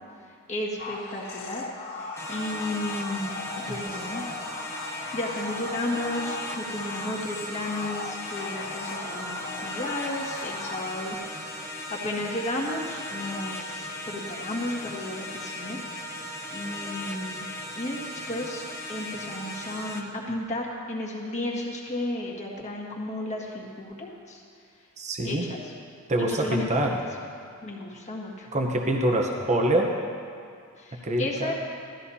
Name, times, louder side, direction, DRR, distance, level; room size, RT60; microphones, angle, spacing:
voice 1, 0.5-4.2 5.1-15.8 16.2-16.3 16.5-17.5 17.7-18.0 18.3-18.6 18.9-24.4 25.2-25.7 26.2-27.0 27.6-28.5 30.8-31.5, left 1 dB, 35° left, -3 dB, 1.8 m, -33 dB
sound 1, 0.8-11.1, left 3 dB, 55° left, 1.8 m, -38 dB
sound 2, 2.2-20.0, left 1 dB, 10° left, 1.0 m, -37 dB
voice 2, 25.0-25.5 26.1-26.9 28.5-29.9 31.0-31.5, right 1 dB, 30° right, 1 dB, 1.0 m, -25 dB
18.0 x 13.5 x 2.8 m, 2.3 s
head